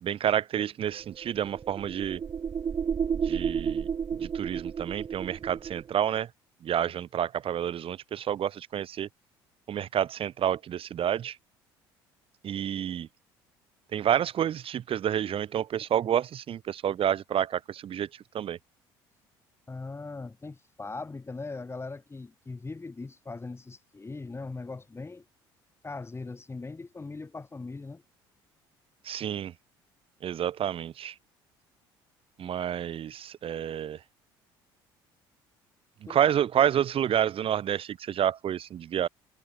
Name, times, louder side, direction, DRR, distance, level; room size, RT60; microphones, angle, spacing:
voice 1, 0.0-2.2 3.2-3.9 4.2-6.3 6.6-9.1 9.7-11.4 12.4-13.1 13.9-18.1 18.3-18.6 29.0-29.5 30.2-31.1 32.4-34.0 36.1-39.1, right 10 dB, 50° right, 3.0 m, -29 dB
sound 1, 0.9-5.9, right 7 dB, 35° right, 0.7 m, -32 dB
voice 2, 19.7-25.2 25.8-28.0 36.1-36.2, left 3 dB, 20° left, 4.7 m, -40 dB
hypercardioid pair, 60°, 12 cm